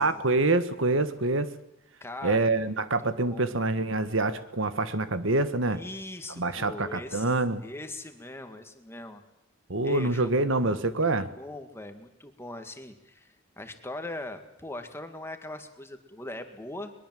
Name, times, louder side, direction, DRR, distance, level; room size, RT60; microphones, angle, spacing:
voice 1, 0.0-1.5 2.2-5.8 6.4-7.6 9.7-11.3, right 2 dB, 65° right, 12 dB, 1.4 m, -26 dB
voice 2, 2.0-2.6 3.0-3.6 5.6-7.3 7.6-9.2 9.8-10.3 11.0-16.9, left 1 dB, 10° left, 6 dB, 1.9 m, -40 dB
22.0 x 22.0 x 7.7 m, 0.85 s
head